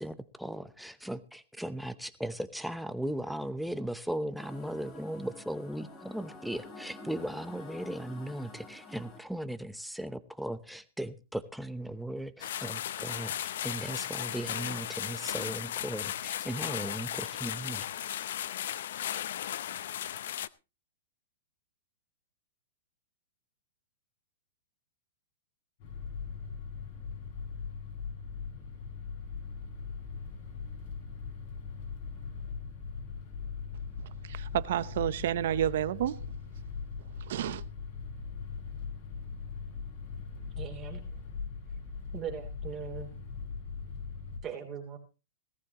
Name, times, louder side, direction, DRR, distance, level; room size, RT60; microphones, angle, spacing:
voice 1, 0.0-17.9, right 1 dB, ahead, 0.8 m, -37 dB
sound 1, 4.3-9.2, left 1 dB, 25° left, 3.5 m, -48 dB
sound 2, 12.4-20.5, left 11 dB, 70° left, 0.6 m, -36 dB
sound 3, 25.8-44.4, left 5 dB, 45° left, 6.0 m, -40 dB
voice 2, 34.3-36.2 37.3-37.6, right 11 dB, 65° right, 0.8 m, -30 dB
voice 3, 40.6-41.0 42.1-43.1 44.4-45.0, right 7 dB, 25° right, 3.3 m, -39 dB
18.0 x 14.0 x 3.0 m
hypercardioid pair, 150°, 0 cm